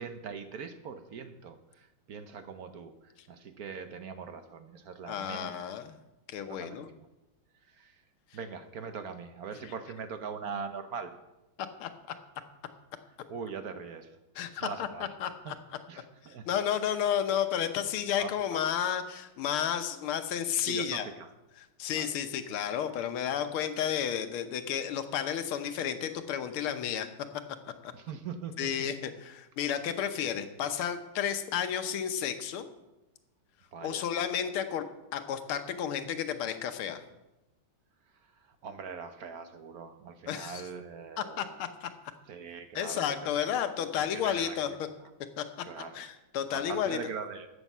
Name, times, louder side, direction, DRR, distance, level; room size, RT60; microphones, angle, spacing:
voice 1, 0.0-5.8 6.5-6.9 7.7-7.9 8.3-11.1 13.3-14.1 14.6-15.1 15.4-15.6 15.9-16.5 18.1-18.6 20.6-21.3 21.9-22.1 27.9-28.9 33.7-34.1 38.4-41.6 42.3-43.5 44.0-44.6 45.0-45.1 45.6-46.1 46.5-47.5, right 5 dB, 60° right, 9 dB, 1.1 m, -42 dB
voice 2, 5.1-5.9 6.3-6.9 11.8-11.9 14.4-15.5 16.5-21.1 21.6-27.1 27.8-27.9 28.6-32.7 33.8-34.8 35.1-37.0 40.3-40.6 41.2-41.9 42.7-44.9 45.4-45.5 45.9-47.0, left 9 dB, 90° left, 8 dB, 1.8 m, -32 dB
13.5 x 8.2 x 5.5 m, 0.99 s
omnidirectional pair, 2.3 m